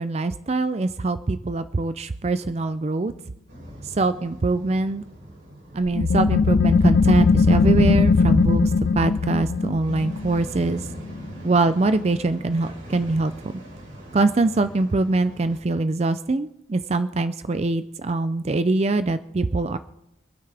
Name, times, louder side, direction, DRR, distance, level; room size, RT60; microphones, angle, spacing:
voice 1, 0.0-3.1 3.8-5.0 5.7-10.9 11.4-13.3 14.1-19.8, right 3 dB, 35° right, 12 dB, 0.4 m, -23 dB
sound 1, 3.5-15.6, right 1 dB, 90° right, 6.9 m, -43 dB
sound 2, 5.9-11.2, left 4 dB, 60° left, 0.4 m, -19 dB
26.0 x 9.3 x 3.4 m, 0.84 s
head